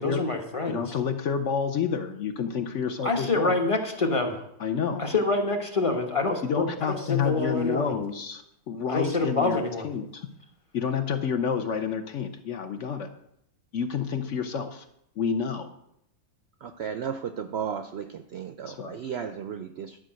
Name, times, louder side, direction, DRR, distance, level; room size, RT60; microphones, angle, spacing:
voice 1, 0.0-0.8 3.0-4.4 5.0-7.9 8.9-9.9, left 3 dB, 25° left, 4 dB, 1.1 m, -26 dB
voice 2, 0.7-3.6 4.6-5.0 6.4-10.3 10.7-13.1 13.7-14.8 15.2-15.7 18.7-19.0, left 6 dB, 60° left, 7 dB, 1.1 m, -29 dB
voice 3, 16.6-20.0, right 8 dB, 65° right, 10 dB, 0.6 m, -34 dB
11.5 x 5.1 x 7.6 m, 0.77 s
omnidirectional pair, 1.6 m